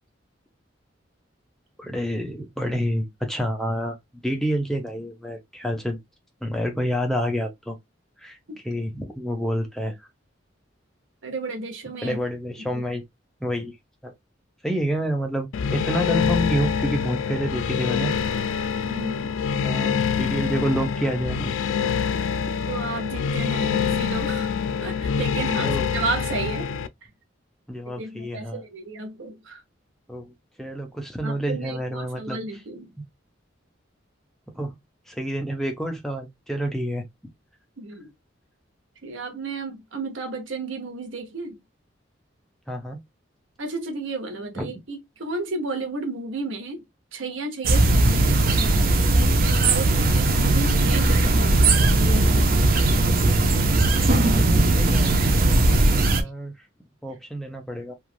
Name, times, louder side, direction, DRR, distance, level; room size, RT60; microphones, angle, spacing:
voice 1, 1.8-4.0 4.2-6.0 6.4-7.7 8.2-8.4 8.6-10.0 12.0-13.0 13.4-13.7 14.0-14.1 14.6-18.1 19.6-21.5 25.6-25.9 27.7-28.6 30.1-30.3 30.6-32.4 34.6-34.7 35.1-37.0 42.7-43.0 44.6-44.7 54.2-55.1 55.4-55.6 55.9-56.5 57.0-57.9, equal, ahead, 0.6 m, -28 dB
voice 2, 11.2-12.2 12.6-12.8 18.8-19.3 22.7-24.5 24.8-26.7 28.0-29.6 31.2-32.9 37.8-38.1 39.0-41.6 43.6-46.8 47.1-48.3 48.6-48.8 49.1-52.7, right 3 dB, 80° right, 0.9 m, -32 dB
sound 1, 15.5-26.9, left 6 dB, 85° left, 0.3 m, -25 dB
sound 2, 47.6-56.2, right 2 dB, 50° right, 0.5 m, -19 dB
3.1 x 2.4 x 2.4 m
head